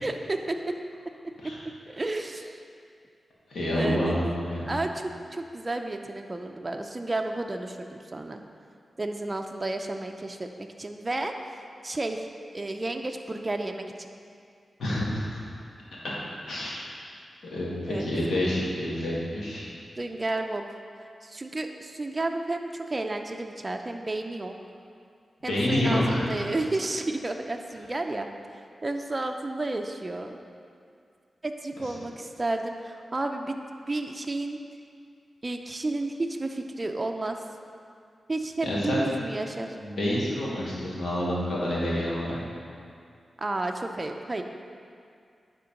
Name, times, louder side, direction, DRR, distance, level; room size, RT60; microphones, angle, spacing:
voice 1, 0.0-0.7 1.9-2.6 3.7-4.1 4.7-8.4 9.0-10.5 10.8-12.3 12.5-14.1 17.9-18.1 20.0-20.6 21.2-24.6 25.4-28.3 28.8-30.4 31.4-34.6 35.4-37.4 38.3-39.8 43.4-44.4, right 2 dB, 30° right, 4 dB, 0.5 m, -32 dB
voice 2, 3.5-4.6 14.8-15.4 16.0-16.1 16.4-16.8 17.5-19.7 25.5-26.2 38.6-39.1 39.8-42.4, left 1 dB, 85° left, -6 dB, 1.8 m, -28 dB
9.7 x 3.8 x 5.2 m, 2.3 s
cardioid pair, 70°, 0 cm